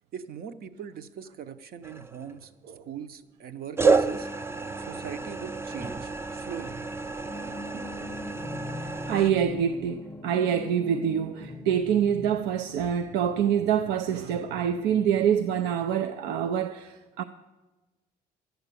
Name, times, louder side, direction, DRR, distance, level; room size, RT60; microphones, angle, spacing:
voice 1, 0.1-2.5 2.8-6.8, right 8 dB, 60° right, 0.8 m, -41 dB
sound 1, 1.8-2.5 3.8-9.3, right 4 dB, 15° right, 0.5 m, -29 dB
sound 2, 7.2-12.5, left 3 dB, 15° left, 0.9 m, -41 dB
voice 2, 8.7-17.2, right 8 dB, 90° right, 0.5 m, -26 dB
12.0 x 8.0 x 8.3 m
cardioid pair, 110°, 17 cm